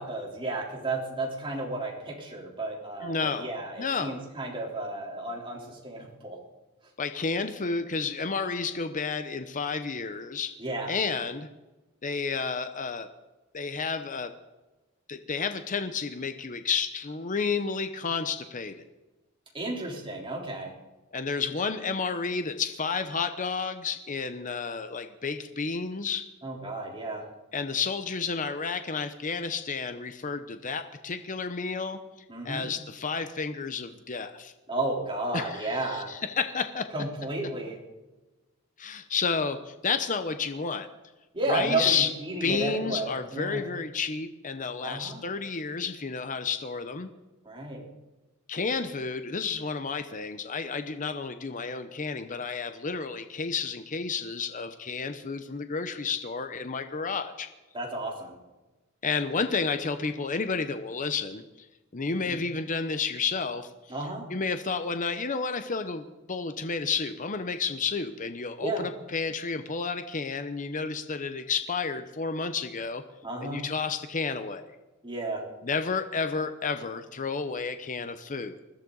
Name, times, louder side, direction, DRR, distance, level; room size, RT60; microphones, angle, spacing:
voice 1, 0.0-6.4 10.6-11.0 19.5-20.7 26.4-27.3 32.3-32.7 34.7-36.1 36.9-37.8 41.3-43.6 44.8-45.2 47.4-47.8 57.7-58.4 62.3-62.4 63.9-64.3 68.6-68.9 73.2-73.7 75.0-75.4, right 2 dB, 25° right, -2 dB, 3.6 m, -33 dB
voice 2, 3.0-3.5 3.8-4.2 7.0-10.5 10.9-11.5 12.0-13.1 13.5-14.3 15.1-18.8 21.1-26.3 27.5-32.0 32.4-34.5 35.3-36.9 38.8-40.9 41.5-42.1 42.4-47.1 48.5-57.5 59.0-61.7 61.9-63.7 64.3-73.0 73.4-74.6 75.6-78.6, left 5 dB, 40° left, 9 dB, 0.8 m, -31 dB
21.0 x 14.5 x 4.0 m, 1.1 s
head